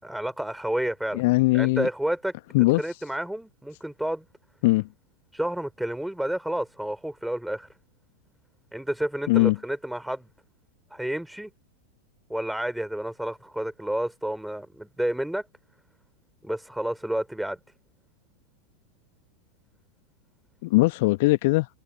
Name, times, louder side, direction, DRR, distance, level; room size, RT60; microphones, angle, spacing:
voice 1, 0.0-1.2 1.5-2.3 2.8-4.3 5.3-7.7 8.7-10.3 10.9-11.5 12.3-15.4 16.4-17.6, right 1 dB, ahead, 5.1 m, -30 dB
voice 2, 1.1-1.9 2.5-2.8 4.6-4.9 9.3-9.6 20.6-21.7, left 22 dB, 50° left, 1.0 m, -20 dB
figure-of-eight pair, 90°, 0 cm